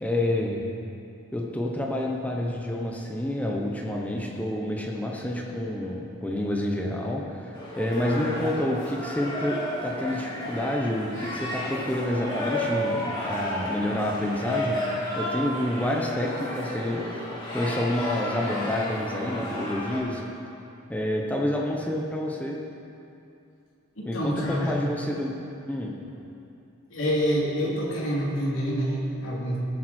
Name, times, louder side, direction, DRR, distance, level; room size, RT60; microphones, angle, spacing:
voice 1, 0.0-0.6 1.3-14.9 15.2-17.3 17.5-20.2 20.9-22.6 24.1-25.3 25.7-25.9, left 1 dB, 5° left, -1 dB, 0.9 m, -28 dB
sound 1, 7.5-20.0, left 1 dB, 25° left, 3.2 m, -32 dB
voice 2, 24.0-24.7 26.9-29.6, equal, 65° left, -5 dB, 3.0 m, -27 dB
19.5 x 9.0 x 4.4 m, 2.7 s
head